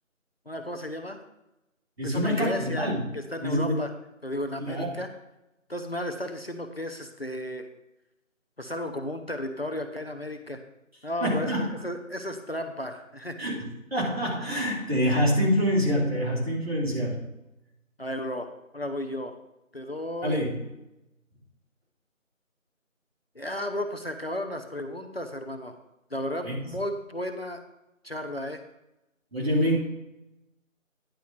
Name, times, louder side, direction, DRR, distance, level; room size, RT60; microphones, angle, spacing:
voice 1, 0.5-1.2 2.0-3.9 4.2-5.1 5.7-7.7 8.6-10.6 11.0-13.4 18.0-19.3 19.7-20.4 23.3-25.8 26.1-27.6 28.0-28.6, left 1 dB, 45° left, 6 dB, 0.8 m, -34 dB
voice 2, 2.0-3.0 3.4-3.7 4.6-5.0 11.2-11.7 13.4-17.3 20.2-20.6 26.4-26.6 29.3-29.8, equal, 50° right, -3 dB, 3.2 m, -26 dB
10.5 x 5.1 x 5.9 m, 0.91 s
figure-of-eight pair, 175°, 41 cm